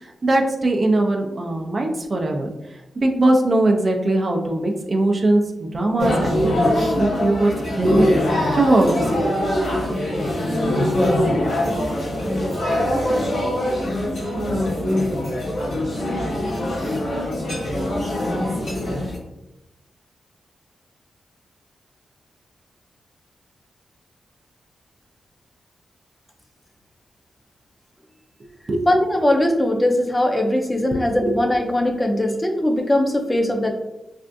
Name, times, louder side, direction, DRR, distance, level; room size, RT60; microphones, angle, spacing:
voice 1, 0.0-2.5 3.0-8.1 8.5-9.4 28.7-28.9 30.9-31.4, right 2 dB, 45° right, 2 dB, 0.4 m, -20 dB
sound 1, 6.0-19.2, left 1 dB, 85° left, 1.4 m, -22 dB
voice 2, 28.9-33.7, left 1 dB, 20° left, 3 dB, 0.5 m, -20 dB
3.3 x 2.5 x 2.5 m, 0.92 s
cardioid pair, 70°, 0 cm